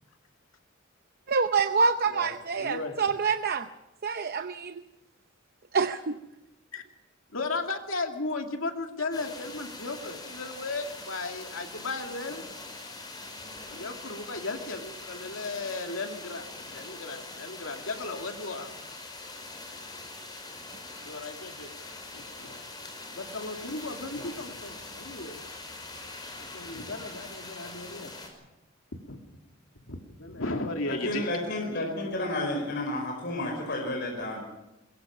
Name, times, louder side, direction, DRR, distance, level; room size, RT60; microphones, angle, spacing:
voice 1, 1.3-3.7 4.0-4.7 5.7-6.2, right 5 dB, 50° right, 9 dB, 0.7 m, -26 dB
voice 2, 2.1-3.1 6.7-6.8 7.3-12.4 13.7-16.5 16.7-18.7 21.0-21.7 22.1-22.6 23.1-25.5 26.4-28.1 28.9-29.2 29.9-31.3, left 3 dB, 85° left, 4 dB, 2.5 m, -35 dB
sound 1, 9.1-28.3, left 2 dB, 20° left, 5.1 m, -43 dB
voice 3, 31.0-34.4, left 1 dB, 55° left, 0 dB, 5.2 m, -31 dB
22.5 x 22.0 x 6.0 m, 0.95 s
head